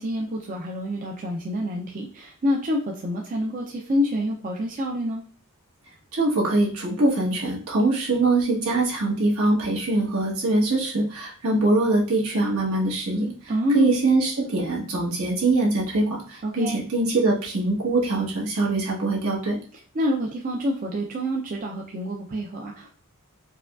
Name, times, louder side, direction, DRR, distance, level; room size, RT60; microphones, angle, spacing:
voice 1, 0.0-5.2 13.5-13.9 16.4-16.8 19.9-22.9, left 1 dB, 35° right, 0 dB, 0.4 m, -27 dB
voice 2, 6.1-13.3 13.7-19.6, right 2 dB, 70° right, -3 dB, 1.3 m, -23 dB
4.7 x 2.2 x 2.4 m, 0.43 s
head